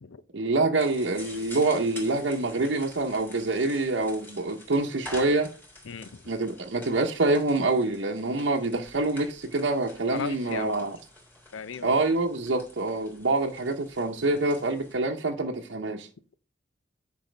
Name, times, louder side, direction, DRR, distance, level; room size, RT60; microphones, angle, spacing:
voice 1, 0.3-5.5 6.3-10.9 11.8-16.1, right 2 dB, 70° right, 0.8 m, -26 dB
sound 1, 0.8-14.9, left 1 dB, 10° left, 3.1 m, -48 dB
voice 2, 5.9-6.2 10.1-10.9 11.5-12.0, left 5 dB, 90° left, 0.6 m, -36 dB
10.5 x 5.6 x 3.3 m
head